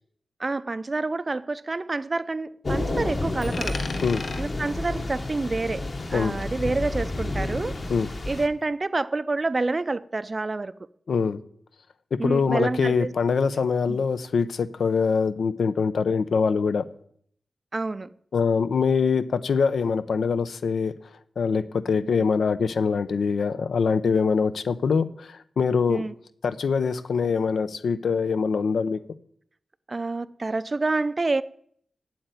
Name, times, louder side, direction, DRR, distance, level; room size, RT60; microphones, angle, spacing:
voice 1, 0.4-3.8 4.4-7.8 8.3-10.7 12.2-13.1 13.9-14.0 17.7-18.1 25.9-26.1 29.9-31.4, right 3 dB, 30° right, 0.4 m, -28 dB
Thunder / Rain, 2.6-8.5, left 2 dB, 40° left, 1.2 m, -30 dB
Coin (dropping), 3.4-6.2 6.4-8.4, left 4 dB, 70° left, 1.3 m, -40 dB
voice 2, 11.1-11.4 12.2-16.8 18.3-20.9 21.4-26.0 26.4-29.0, left 5 dB, 85° left, 0.7 m, -24 dB
8.7 x 8.1 x 9.1 m
wide cardioid pair, 145°, 0 cm